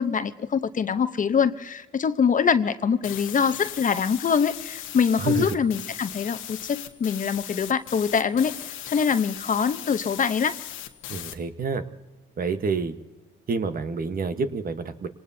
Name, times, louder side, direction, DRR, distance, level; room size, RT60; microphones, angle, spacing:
voice 1, 0.0-10.6, left 6 dB, 40° left, 11 dB, 0.9 m, -24 dB
sound 1, 3.0-11.3, left 11 dB, 90° left, 1.2 m, -38 dB
voice 2, 5.2-5.6 11.1-11.8 12.4-13.0 13.5-15.1, right 4 dB, 45° right, 9 dB, 1.3 m, -28 dB
26.5 x 19.0 x 2.8 m, 1.1 s
cardioid pair, 90°, 20 cm